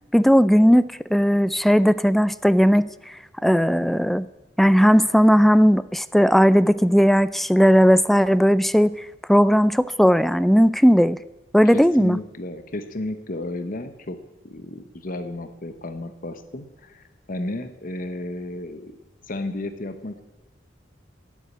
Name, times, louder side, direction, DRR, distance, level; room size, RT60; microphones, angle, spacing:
voice 1, 0.1-0.8 1.1-2.9 3.4-4.3 4.6-8.9 9.3-11.2 11.5-12.2, equal, ahead, 16 dB, 0.4 m, -17 dB
voice 2, 11.6-14.2 14.4-18.9 19.3-20.2, left 2 dB, 45° left, 9 dB, 1.0 m, -33 dB
11.5 x 8.3 x 9.7 m, 1.0 s
head